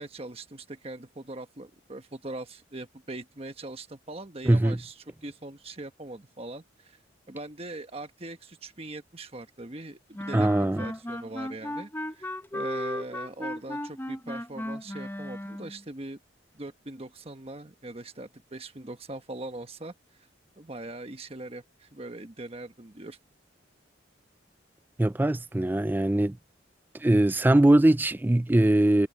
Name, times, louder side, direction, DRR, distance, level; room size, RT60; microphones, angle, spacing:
voice 1, 0.0-7.0 7.3-10.5 10.8-16.2 16.5-19.9 20.6-23.2, right 2 dB, 30° right, 1.3 m, -41 dB
voice 2, 4.5-4.8 10.3-10.8 25.0-26.4 27.0-29.1, right 1 dB, 10° right, 0.3 m, -21 dB
sound 1, 10.1-15.8, left 1 dB, 10° left, 1.0 m, -35 dB
head